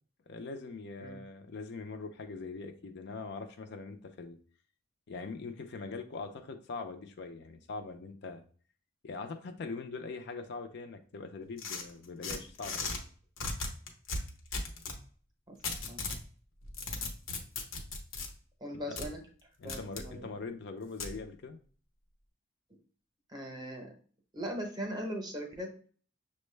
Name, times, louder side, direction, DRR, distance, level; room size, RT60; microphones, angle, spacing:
voice 1, 0.3-4.4 5.1-8.4 9.0-13.1 18.9-19.0 19.6-21.6, left 4 dB, 55° left, 7 dB, 0.4 m, -42 dB
sound 1, 11.6-13.0 13.4-15.0 15.6-16.2 16.6-18.3 19.0-19.1 19.7-20.1 21.0-21.1, left 3 dB, 80° left, 0.8 m, -37 dB
voice 2, 18.6-19.2 19.6-20.3 23.3-23.9 24.3-25.9, equal, 20° right, 3 dB, 0.7 m, -39 dB
6.1 x 2.1 x 3.2 m, 0.43 s
head